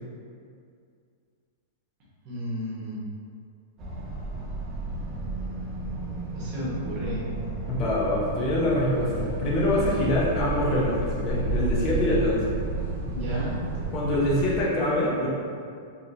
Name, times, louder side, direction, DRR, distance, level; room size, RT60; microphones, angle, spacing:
voice 1, 2.2-3.0 6.3-7.2 13.1-13.5, equal, 40° right, -6 dB, 1.3 m, -32 dB
sound 1, 3.8-14.6, right 2 dB, 25° right, 0.8 m, -35 dB
voice 2, 7.7-12.6 13.9-15.3, left 1 dB, 30° left, -6 dB, 0.8 m, -25 dB
sound 2, 8.9-14.4, right 1 dB, 70° right, 0.8 m, -32 dB
4.7 x 2.8 x 2.7 m, 2.3 s
supercardioid pair, 150°, 0 cm